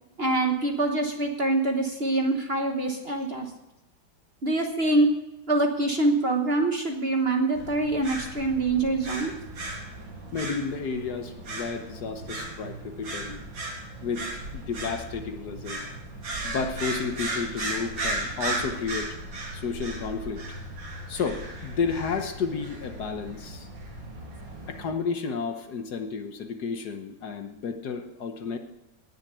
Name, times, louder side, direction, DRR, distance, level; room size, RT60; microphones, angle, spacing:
voice 1, 0.2-3.5 4.4-5.1 5.5-9.3, right 2 dB, 35° right, 3 dB, 1.3 m, -25 dB
sound 1, 7.5-24.9, right 2 dB, 80° right, 3.7 m, -36 dB
voice 2, 10.3-13.4 14.0-15.8 16.4-19.1 19.5-20.6 21.1-23.7 24.7-28.6, left 5 dB, 60° left, 6 dB, 1.5 m, -32 dB
18.5 x 6.9 x 6.8 m, 0.91 s
omnidirectional pair, 2.0 m